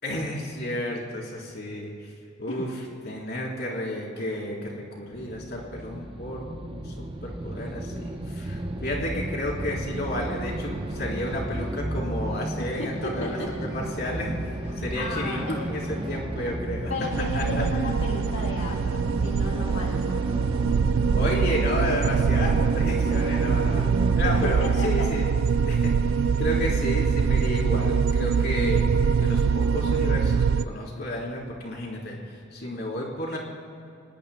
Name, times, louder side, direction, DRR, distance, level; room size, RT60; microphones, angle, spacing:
voice 1, 0.0-2.1 2.4-6.9 7.2-14.3 14.8-16.9 17.4-17.6 21.1-23.9 24.1-25.3 25.7-28.9 29.2-33.4, left 1 dB, 50° left, -2 dB, 3.7 m, -32 dB
powering up, 5.1-24.6, right 1 dB, 25° right, 0.8 m, -33 dB
voice 2, 12.6-13.5 14.7-15.6 16.9-20.1 24.4-25.1, left 2 dB, 75° left, -2 dB, 1.5 m, -34 dB
sound 1, 17.1-30.6, right 6 dB, 85° right, 0.4 m, -23 dB
28.0 x 19.0 x 2.2 m, 2.5 s
head